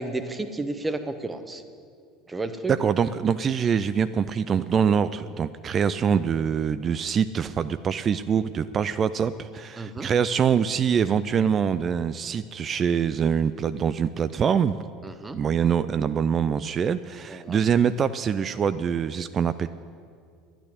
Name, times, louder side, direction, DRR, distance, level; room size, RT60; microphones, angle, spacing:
voice 1, 0.0-1.6 2.3-2.7 9.8-10.1 15.0-15.4 17.3-17.6, right 2 dB, 15° right, 10 dB, 1.0 m, -32 dB
voice 2, 2.7-14.7 15.3-19.7, right 7 dB, 35° right, 14 dB, 0.4 m, -24 dB
11.5 x 9.1 x 9.6 m, 2.2 s
figure-of-eight pair, 70°, 0 cm